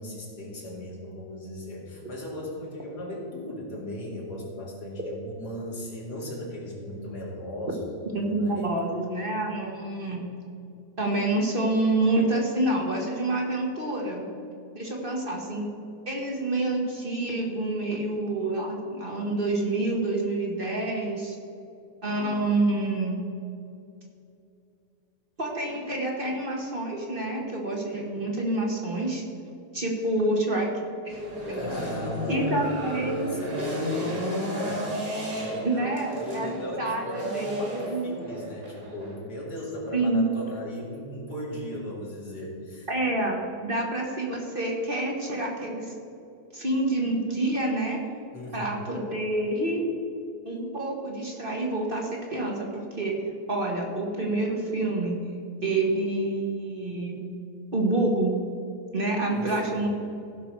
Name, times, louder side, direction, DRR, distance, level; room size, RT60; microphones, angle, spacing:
voice 1, 0.0-7.8 8.1-8.7 31.5-42.9 48.3-48.7 59.3-59.9, left 1 dB, 85° left, -3 dB, 2.9 m, -37 dB
voice 2, 8.1-10.3 11.0-14.3 14.7-15.7 16.1-21.4 22.0-23.2 25.4-29.2 29.7-30.7 31.0-31.6 32.3-33.4 35.6-36.5 36.8-38.1 39.9-40.3 42.9-45.9 46.5-48.0 48.5-49.9 50.4-53.2 53.5-55.2 55.6-57.2 57.7-58.4 58.9-59.9, right 2 dB, 35° right, -1 dB, 1.4 m, -27 dB
sound 1, 31.1-39.2, equal, 60° right, 3.2 m, -33 dB
15.5 x 5.9 x 4.6 m, 2.6 s
omnidirectional pair, 1.7 m